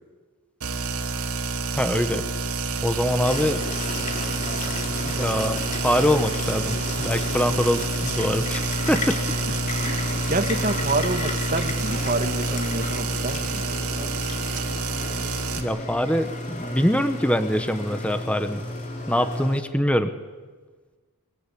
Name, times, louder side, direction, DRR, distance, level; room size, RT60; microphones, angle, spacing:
sound 1, 0.6-15.6, right 3 dB, 80° right, 2.8 m, -29 dB
voice 1, 1.8-2.3 2.8-3.6 5.2-8.6 8.9-9.2 15.6-18.6 19.1-20.1, equal, 5° left, 9 dB, 1.1 m, -23 dB
sound 2, 3.2-19.6, left 2 dB, 35° left, 3.3 m, -33 dB
voice 2, 9.8-14.1, right 2 dB, 35° right, 6 dB, 2.0 m, -28 dB
25.0 x 23.5 x 8.5 m, 1.4 s
head